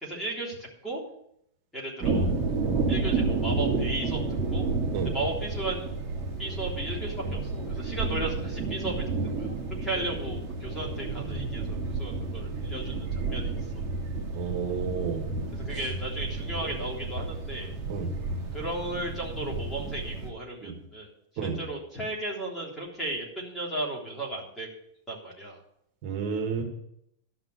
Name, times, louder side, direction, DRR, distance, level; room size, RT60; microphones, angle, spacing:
voice 1, 0.0-1.0 1.7-2.3 2.9-4.2 4.5-4.7 5.0-5.9 6.4-9.0 9.4-9.5 9.8-13.8 15.5-17.7 18.5-21.1 21.4-24.7 25.1-25.6, right 2 dB, 10° left, -4 dB, 3.5 m, -35 dB
sound 1, 2.0-20.3, right 3 dB, 20° right, 2.6 m, -31 dB
voice 2, 14.3-15.2 17.9-18.1 20.6-20.8 21.4-21.6 26.0-26.6, right 6 dB, 40° right, 2 dB, 2.3 m, -31 dB
12.0 x 5.9 x 8.1 m, 0.73 s
supercardioid pair, 160°, 0 cm